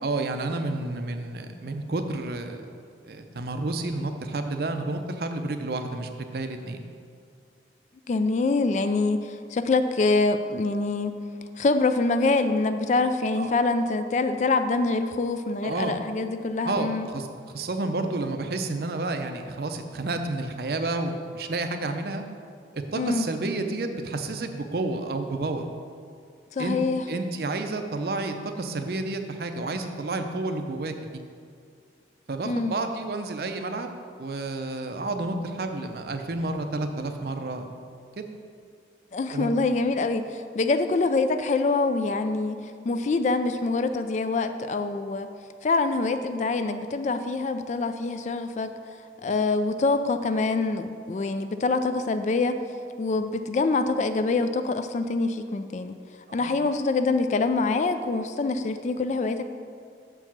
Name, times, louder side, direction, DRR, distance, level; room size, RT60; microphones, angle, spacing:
voice 1, 0.0-2.6 3.1-6.8 13.4-13.6 15.6-15.9 16.6-22.2 22.7-25.7 26.6-31.2 32.3-33.9 34.2-37.7 38.2-38.3 39.3-39.5 56.3-56.6, right 2 dB, 60° right, 7 dB, 0.5 m, -30 dB
voice 2, 8.1-11.1 11.6-17.1 22.9-23.3 26.6-27.0 32.4-32.8 39.1-42.6 42.8-45.3 45.6-48.7 49.2-52.6 53.0-56.0 56.3-59.5, left 3 dB, 40° left, 9 dB, 0.3 m, -25 dB
6.4 x 4.6 x 5.9 m, 2.2 s
head